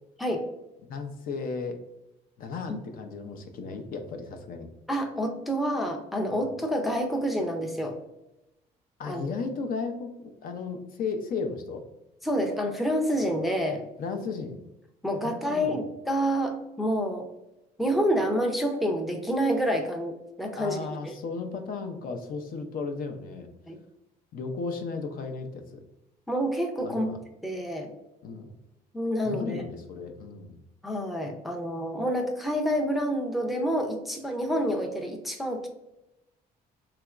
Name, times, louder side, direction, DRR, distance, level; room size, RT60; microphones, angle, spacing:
voice 1, 0.9-1.8 2.4-4.7 6.3-6.5 9.0-11.8 14.0-14.6 15.2-15.8 20.6-23.5 24.3-25.8 26.8-27.2 28.2-28.5 29.2-30.6, left 4 dB, 55° left, 5 dB, 0.5 m, -35 dB
voice 2, 4.9-8.0 9.1-9.2 12.2-13.9 15.0-17.3 17.8-20.8 21.0-21.2 23.7-23.8 26.3-27.1 27.4-27.9 28.9-29.6 30.8-35.7, equal, ahead, 2 dB, 0.5 m, -28 dB
3.3 x 3.0 x 2.3 m, 0.91 s
cardioid pair, 110°, 17 cm